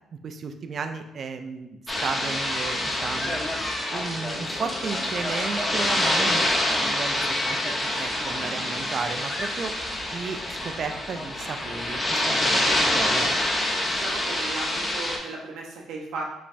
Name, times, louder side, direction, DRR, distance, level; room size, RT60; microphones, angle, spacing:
voice 1, 0.2-3.4 3.9-13.3, right 5 dB, 50° right, 7 dB, 0.4 m, -34 dB
sound 1, 1.9-15.2, left 1 dB, 25° left, 0.9 m, -26 dB
voice 2, 13.8-16.2, right 3 dB, 85° right, -1 dB, 0.8 m, -36 dB
5.1 x 3.3 x 2.6 m, 0.91 s
cardioid pair, 90°, 0 cm